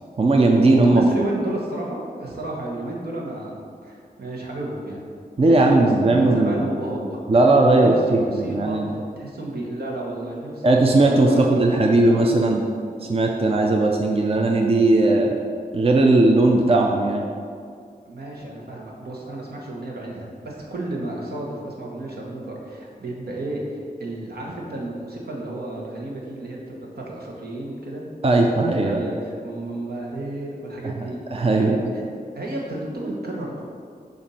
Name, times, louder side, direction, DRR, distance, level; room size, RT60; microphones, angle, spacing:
voice 1, 0.2-1.0 5.4-6.7 7.3-8.9 10.6-12.6 13.0-15.4 15.7-17.2 28.2-29.0 30.8-31.8, right 2 dB, 40° right, 1 dB, 0.5 m, -18 dB
voice 2, 0.9-5.1 5.5-7.3 7.8-12.2 18.1-31.2 31.5-33.6, right 1 dB, 80° right, -3 dB, 1.1 m, -32 dB
7.0 x 2.6 x 5.5 m, 2.3 s
wide cardioid pair, 80°, 16 cm